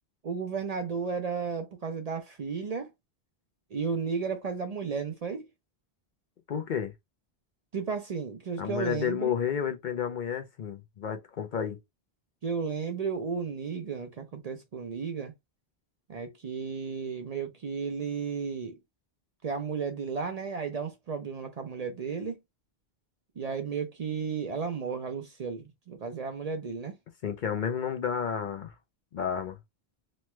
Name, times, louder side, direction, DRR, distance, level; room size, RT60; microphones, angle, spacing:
voice 1, 0.2-2.9 3.7-5.5 7.7-9.3 12.4-15.3 16.1-18.8 19.4-22.4 23.4-27.0, right 5 dB, 50° right, 0.5 m, -33 dB
voice 2, 6.5-6.9 8.6-11.8 27.2-28.7 29.1-29.6, left 8 dB, 60° left, 0.6 m, -31 dB
3.1 x 2.2 x 2.9 m
omnidirectional pair, 1.0 m